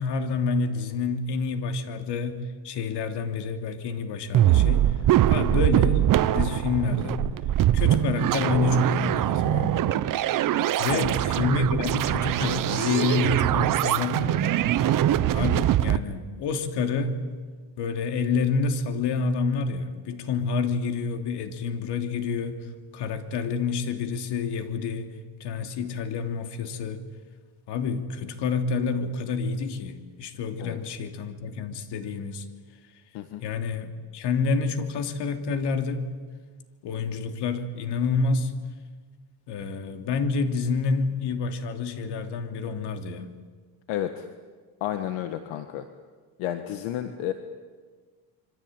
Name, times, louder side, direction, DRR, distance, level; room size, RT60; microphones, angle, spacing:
voice 1, 0.0-4.9 5.3-6.0 6.3-7.3 7.7-9.8 10.8-14.6 15.3-17.2 17.8-22.7 22.9-27.0 27.7-32.4 33.4-36.1 36.8-38.5 39.5-43.3, left 4 dB, 60° left, 7 dB, 3.1 m, -28 dB
sound 1, 4.3-16.0, right 12 dB, 45° right, 1.0 m, -23 dB
voice 2, 43.9-44.3 44.8-45.9 46.4-47.3, left 11 dB, 75° left, 8 dB, 1.8 m, -31 dB
27.0 x 24.5 x 9.1 m, 1.5 s
cardioid pair, 125°, 46 cm